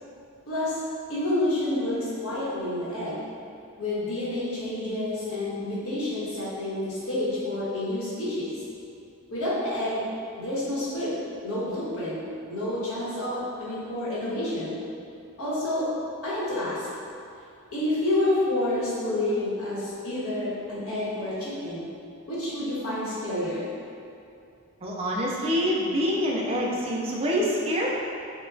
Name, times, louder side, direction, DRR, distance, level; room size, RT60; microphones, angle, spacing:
voice 1, 0.5-0.8 1.1-3.2 3.8-8.5 9.3-10.0 10.4-11.1 11.4-14.8 15.4-15.9 16.2-16.8 17.7-21.9 22.3-23.7, left 1 dB, 80° left, -9 dB, 1.2 m, -29 dB
voice 2, 24.8-27.9, equal, 25° right, -3 dB, 0.3 m, -26 dB
5.8 x 2.2 x 2.5 m, 2.6 s
head